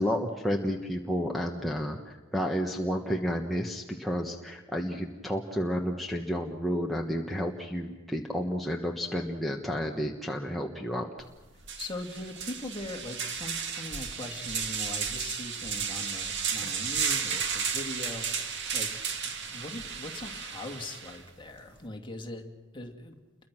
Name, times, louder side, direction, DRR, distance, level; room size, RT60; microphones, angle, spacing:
voice 1, 0.0-11.1, equal, ahead, -1 dB, 1.3 m, -31 dB
sound 1, 11.2-11.3 11.6-21.2, right 6 dB, 60° right, 2.0 m, -33 dB
voice 2, 11.8-18.9 19.5-22.4 22.7-23.2, left 2 dB, 25° left, 3 dB, 2.4 m, -40 dB
29.5 x 23.0 x 6.2 m, 1.3 s
head